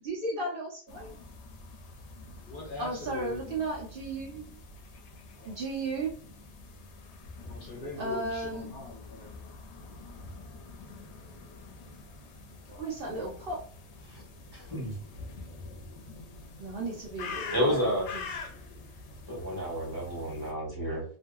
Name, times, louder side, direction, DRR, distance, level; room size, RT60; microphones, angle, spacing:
voice 1, 0.0-1.1 2.8-4.6 5.4-6.1 7.9-8.7 12.7-13.6 16.6-18.3, right 2 dB, 60° right, -3 dB, 0.9 m, -35 dB
sound 1, 0.9-20.5, left 3 dB, 80° left, 0.9 m, -46 dB
voice 2, 2.5-3.6 5.3-5.5 7.4-9.3 12.7-13.3, left 3 dB, 55° left, -2 dB, 0.9 m, -42 dB
voice 3, 14.5-15.0 17.5-18.2 19.3-21.0, equal, 20° right, -6 dB, 1.4 m, -31 dB
2.7 x 2.6 x 2.3 m, 0.43 s
omnidirectional pair, 1.2 m